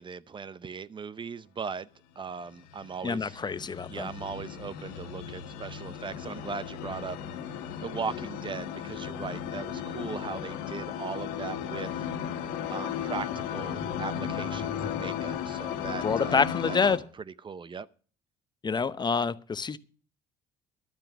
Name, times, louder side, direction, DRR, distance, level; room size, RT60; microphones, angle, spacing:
voice 1, 0.0-1.9 2.2-3.4 3.9-7.2 7.5-12.1 12.7-16.8 17.2-17.9, right 5 dB, 30° right, 0.6 m, -38 dB
sound 1, 2.6-17.0, left 9 dB, 85° left, 1.6 m, -35 dB
voice 2, 3.0-4.1 16.0-17.0 18.6-19.8, left 5 dB, 30° left, 0.7 m, -27 dB
12.5 x 8.9 x 6.0 m
supercardioid pair, 80°, 16 cm